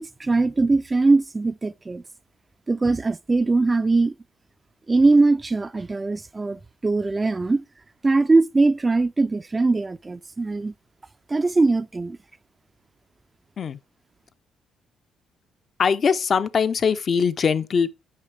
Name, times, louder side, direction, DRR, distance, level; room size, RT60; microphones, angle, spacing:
voice 1, 0.0-2.0 2.7-4.1 4.9-7.6 8.0-10.7 11.3-12.2, right 3 dB, 25° right, 0.3 m, -21 dB
voice 2, 15.8-17.9, left 6 dB, 50° left, 0.5 m, -22 dB
6.6 x 5.0 x 3.3 m
supercardioid pair, 65°, 0 cm